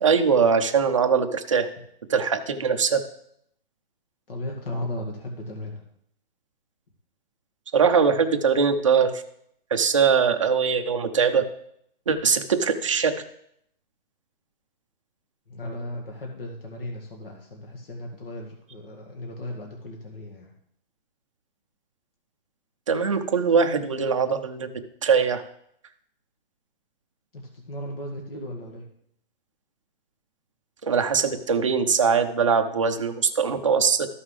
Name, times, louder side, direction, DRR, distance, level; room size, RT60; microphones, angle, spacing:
voice 1, 0.0-1.7 2.1-3.0 7.7-9.2 9.7-11.4 12.1-13.1 22.9-24.7 25.0-25.4 30.8-34.1, right 6 dB, 35° right, 6 dB, 0.6 m, -21 dB
voice 2, 4.3-5.8 15.5-20.5 27.3-28.9, left 1 dB, 70° left, 0 dB, 1.9 m, -36 dB
13.5 x 5.6 x 3.3 m, 0.70 s
hypercardioid pair, 180°, 29 cm